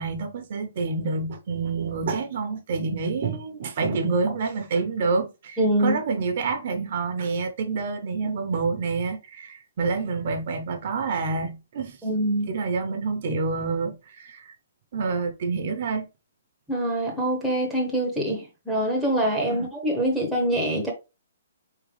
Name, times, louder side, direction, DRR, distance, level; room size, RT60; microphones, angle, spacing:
voice 1, 0.0-12.0 12.5-14.5 14.9-16.1 19.5-19.7, right 4 dB, 45° right, 0.8 m, -28 dB
voice 2, 5.6-6.0 12.0-12.5 16.7-20.9, right 1 dB, ahead, 1.0 m, -24 dB
4.3 x 3.7 x 3.3 m
hypercardioid pair, 165°, 0 cm